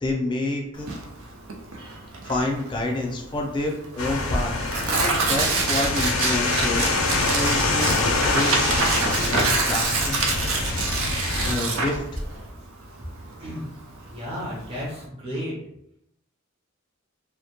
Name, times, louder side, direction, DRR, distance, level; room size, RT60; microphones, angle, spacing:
voice 1, 0.0-0.9 2.2-4.5 4.8-8.0 8.3-10.2 11.5-12.0, left 2 dB, 25° left, 0 dB, 0.4 m, -28 dB
Tearing, 0.8-15.0, right 3 dB, 80° right, 0.5 m, -27 dB
sound 1, 4.0-11.5, left 3 dB, 90° left, 0.4 m, -25 dB
sound 2, 6.5-12.5, equal, 60° right, 0.8 m, -41 dB
voice 2, 14.1-15.5, equal, 30° right, -6 dB, 0.6 m, -33 dB
2.1 x 2.1 x 2.8 m, 0.76 s
head